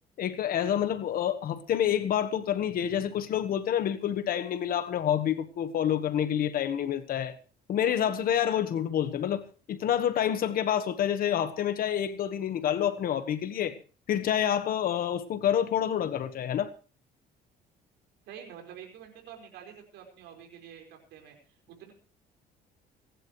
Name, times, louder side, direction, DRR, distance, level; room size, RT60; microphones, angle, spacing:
voice 1, 0.2-7.4 7.7-13.8 14.1-16.7, left 10 dB, 60° left, 1.3 m, -28 dB
voice 2, 18.3-21.9, right 8 dB, 85° right, 4.7 m, -48 dB
28.0 x 11.5 x 3.1 m
cardioid pair, 110°, 17 cm